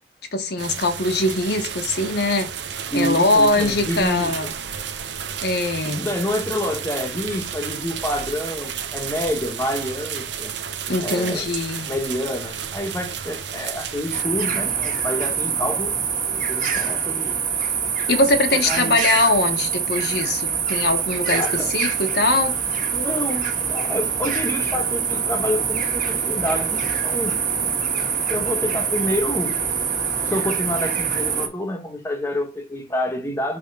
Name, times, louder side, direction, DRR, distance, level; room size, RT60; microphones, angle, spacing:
voice 1, 0.3-4.5 5.4-6.1 10.9-11.9 18.1-22.5, left 2 dB, 60° left, 1.0 m, -22 dB
sound 1, 0.6-14.2, right 8 dB, 70° right, 0.7 m, -32 dB
voice 2, 2.9-4.3 5.8-10.6 11.0-11.5 11.8-16.0 16.3-17.4 18.5-19.0 21.3-21.7 22.9-27.4 28.3-29.6 30.2-33.6, left 1 dB, 15° left, 1.0 m, -28 dB
sound 2, 14.1-31.5, right 7 dB, 45° right, 1.7 m, -24 dB
5.2 x 3.4 x 5.3 m
head